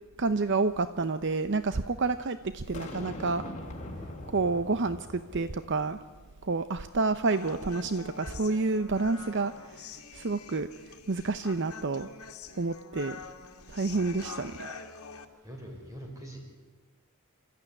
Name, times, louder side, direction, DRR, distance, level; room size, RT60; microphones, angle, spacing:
voice 1, 0.2-3.5 4.3-6.0 6.4-12.1 12.6-13.2 13.7-14.7, right 3 dB, 55° right, 11 dB, 0.7 m, -29 dB
Boom, 2.7-6.0, left 1 dB, 35° left, 3.7 m, -42 dB
Human voice, 7.3-15.2, left 5 dB, 75° left, 2.1 m, -45 dB
voice 2, 13.9-14.9 15.4-16.4, equal, 15° right, 1 dB, 6.0 m, -46 dB
28.0 x 14.5 x 10.0 m, 1.3 s
head